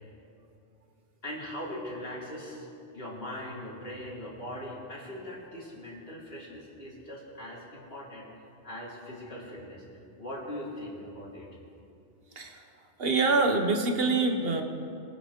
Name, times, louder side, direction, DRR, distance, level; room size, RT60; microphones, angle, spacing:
voice 1, 1.2-2.7 2.9-8.3 8.6-9.8 10.2-11.5, left 1 dB, 65° left, -5 dB, 3.3 m, -40 dB
voice 2, 13.0-14.6, right 3 dB, 60° right, 5 dB, 1.4 m, -25 dB
23.5 x 11.5 x 3.8 m, 2.6 s
omnidirectional pair, 1.1 m